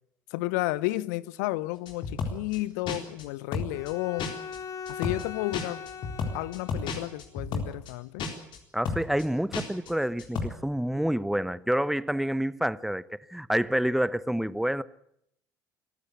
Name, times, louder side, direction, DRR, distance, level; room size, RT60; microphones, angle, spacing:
voice 1, 0.3-4.3 4.9-5.8 6.3-8.2, left 19 dB, 70° left, 0.9 m, -32 dB
sound 1, 1.9-2.6 2.9-3.2 3.5-3.9 4.2-4.6 4.9-5.2 5.5-7.9 8.2-8.6 8.8-9.2 9.5-9.9 10.2-10.5, left 4 dB, 55° left, 4.1 m, -32 dB
Bowed string instrument, 3.7-7.2, left 7 dB, 35° left, 1.5 m, -41 dB
voice 2, 8.7-13.0 13.3-14.8, equal, 5° right, 0.9 m, -28 dB
25.0 x 15.0 x 8.2 m
hypercardioid pair, 60°, 10 cm